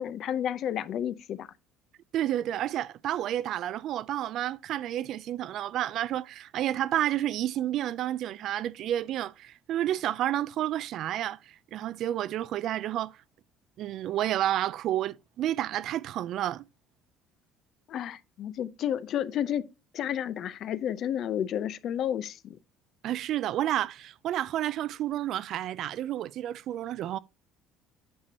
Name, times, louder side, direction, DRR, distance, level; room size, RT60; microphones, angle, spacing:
voice 1, 0.0-1.5 17.9-19.6 19.9-22.6, left 10 dB, 50° left, 0.5 m, -31 dB
voice 2, 2.1-13.2 13.8-16.7 23.0-27.2, right 12 dB, 55° right, 0.3 m, -30 dB
8.6 x 6.8 x 2.8 m
cardioid pair, 135°, 0 cm